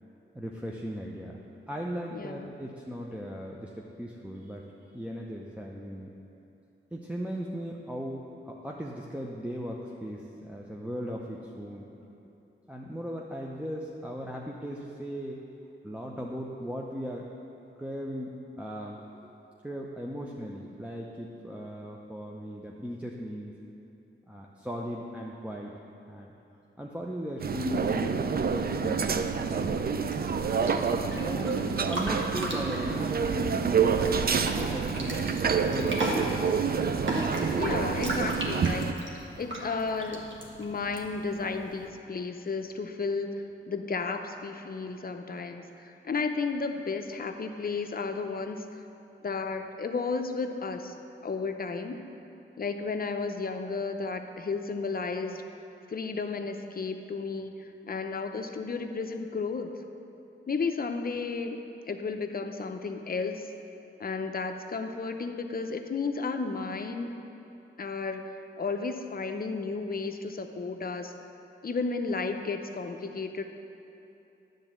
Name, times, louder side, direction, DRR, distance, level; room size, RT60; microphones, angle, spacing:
voice 1, 0.3-1.3 1.7-4.6 4.9-6.1 6.9-11.9 12.6-15.4 15.8-17.3 17.8-19.3 19.6-23.5 24.3-25.7 26.1-26.3 26.8-30.1 31.1-31.5 31.8-35.2 35.7-36.3, equal, 5° right, -2 dB, 0.7 m, -37 dB
voice 2, 2.1-2.6 31.4-31.8 37.6-40.3 40.6-48.8 49.2-50.9 51.2-52.1 52.6-55.4 55.9-59.7 60.5-63.5 64.0-67.1 67.8-71.1 71.6-73.4, left 4 dB, 45° left, 6 dB, 0.6 m, -33 dB
sound 1, 27.4-38.9, right 6 dB, 50° right, 0.4 m, -28 dB
sound 2, 29.8-41.9, right 1 dB, 65° right, 1.4 m, -37 dB
10.0 x 3.9 x 7.4 m, 2.9 s
cardioid pair, 65°, 21 cm